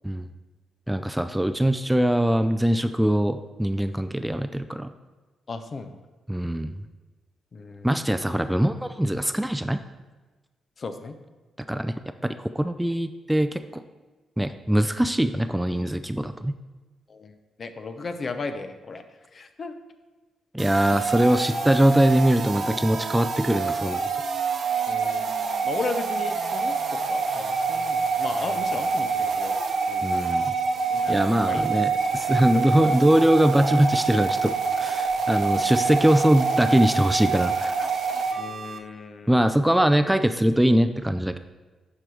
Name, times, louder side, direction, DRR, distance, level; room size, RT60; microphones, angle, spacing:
voice 1, 0.9-4.9 6.3-6.7 7.8-9.8 11.7-11.9 12.4-13.8 14.4-16.5 20.5-24.0 30.0-30.5 31.1-37.9 39.3-41.4, right 1 dB, 5° right, 9 dB, 0.4 m, -22 dB
voice 2, 5.5-6.0 7.5-8.3 10.8-11.2 17.1-19.0 19.3-19.7 20.9-21.0 24.9-25.3 25.6-29.5 29.9-30.5 30.9-31.6 32.5-32.7 38.4-39.4, left 4 dB, 50° left, 8 dB, 0.6 m, -36 dB
sound 1, 20.6-38.8, right 4 dB, 65° right, 0.8 m, -26 dB
10.0 x 4.7 x 3.3 m, 1.2 s
supercardioid pair, 60°, 0 cm